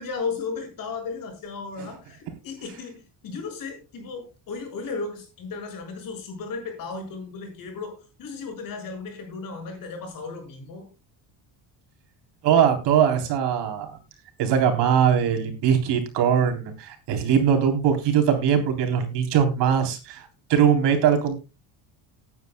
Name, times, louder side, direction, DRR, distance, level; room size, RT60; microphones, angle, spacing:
voice 1, 0.0-10.9, left 4 dB, 45° left, 4 dB, 6.1 m, -35 dB
voice 2, 12.4-14.0 14.4-21.4, right 8 dB, 60° right, 5 dB, 3.8 m, -21 dB
19.0 x 9.6 x 2.3 m, 0.28 s
cardioid pair, 170°, 45 cm